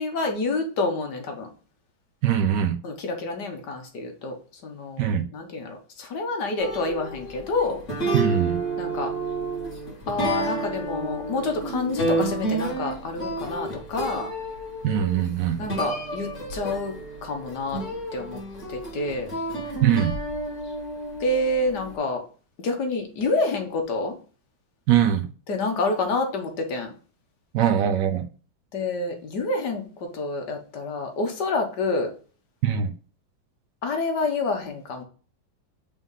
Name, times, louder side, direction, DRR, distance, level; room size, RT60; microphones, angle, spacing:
voice 1, 0.0-1.5 2.8-4.3 4.6-7.8 8.8-9.1 10.1-14.3 15.6-17.8 18.1-18.4 18.7-19.3 21.2-22.2 22.6-24.1 25.5-26.9 28.7-32.1 33.8-35.0, left 3 dB, 65° left, 1.6 m, -28 dB
voice 2, 2.2-2.8 5.0-5.3 8.1-8.6 14.8-15.6 19.8-20.1 24.9-25.2 27.5-28.3 32.6-32.9, right 9 dB, 70° right, 1.2 m, -22 dB
sound 1, 6.6-22.0, right 2 dB, 40° left, 2.1 m, -30 dB
5.3 x 3.7 x 5.4 m
omnidirectional pair, 2.1 m